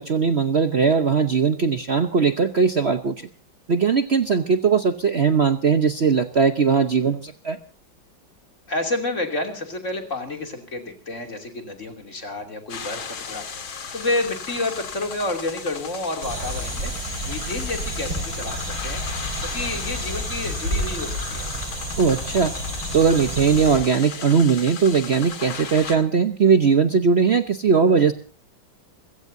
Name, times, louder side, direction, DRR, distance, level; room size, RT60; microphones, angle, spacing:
voice 1, 0.0-3.3 3.7-7.6 22.0-22.5 22.9-28.1, right 5 dB, 50° right, 8 dB, 0.8 m, -19 dB
voice 2, 8.7-21.5, left 2 dB, 35° left, 4 dB, 3.2 m, -30 dB
sound 1, 12.7-26.0, left 6 dB, 90° left, 2.7 m, -36 dB
sound 2, 16.2-23.8, right 1 dB, 80° right, 7.7 m, -30 dB
28.5 x 16.5 x 2.7 m, 0.36 s
omnidirectional pair, 2.2 m